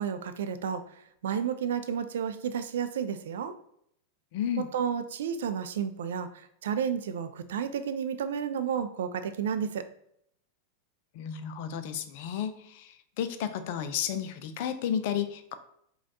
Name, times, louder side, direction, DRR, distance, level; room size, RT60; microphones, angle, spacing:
voice 1, 0.0-3.5 4.6-9.8, right 7 dB, 60° right, 10 dB, 0.3 m, -32 dB
voice 2, 4.3-4.6 11.1-15.5, left 9 dB, 50° left, 10 dB, 0.4 m, -32 dB
4.9 x 2.3 x 2.7 m, 0.71 s
figure-of-eight pair, 90°, 0 cm